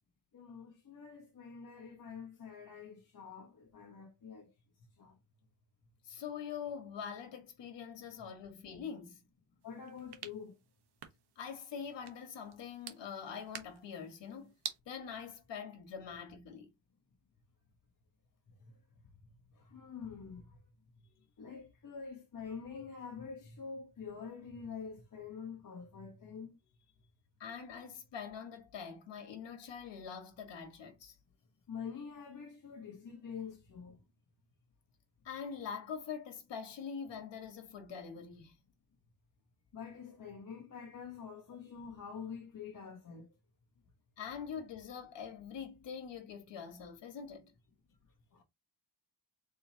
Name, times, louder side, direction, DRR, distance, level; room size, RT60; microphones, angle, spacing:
voice 1, 0.3-4.5 5.0-5.2 9.6-10.6 18.6-18.7 19.5-20.6 21.4-26.6 31.7-34.0 39.7-43.3 48.3-48.4, left 6 dB, 50° left, 1.2 m, -46 dB
voice 2, 6.0-9.2 11.3-14.5 14.8-16.7 27.4-31.1 35.2-38.5 44.2-47.5, left 7 dB, 80° left, 1.7 m, -44 dB
sound 1, 9.6-14.8, right 8 dB, 65° right, 1.1 m, -49 dB
4.2 x 3.6 x 2.8 m
cardioid pair, 120°, 43 cm